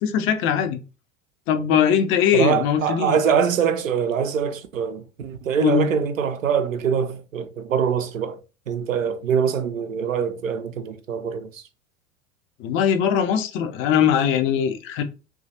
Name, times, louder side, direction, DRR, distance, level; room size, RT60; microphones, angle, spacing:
voice 1, 0.0-0.8 1.5-3.2 5.6-5.9 12.6-15.0, left 8 dB, 35° left, 0.5 m, -21 dB
voice 2, 2.3-8.4 8.7-11.6, right 7 dB, 80° right, 0.5 m, -24 dB
3.1 x 2.4 x 2.6 m
figure-of-eight pair, 80°, 39 cm